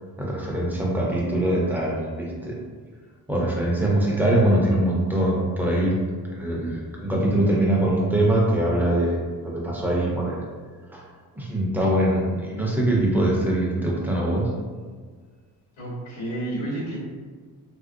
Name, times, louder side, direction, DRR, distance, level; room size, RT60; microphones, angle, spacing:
voice 1, 0.2-2.5 3.3-6.0 6.3-10.4 10.9-11.0 11.4-14.5, right 1 dB, 5° right, -4 dB, 0.4 m, -23 dB
voice 2, 15.8-17.0, right 1 dB, 85° left, -6 dB, 1.2 m, -30 dB
3.1 x 2.5 x 2.5 m, 1.6 s
cardioid pair, 155°, 39 cm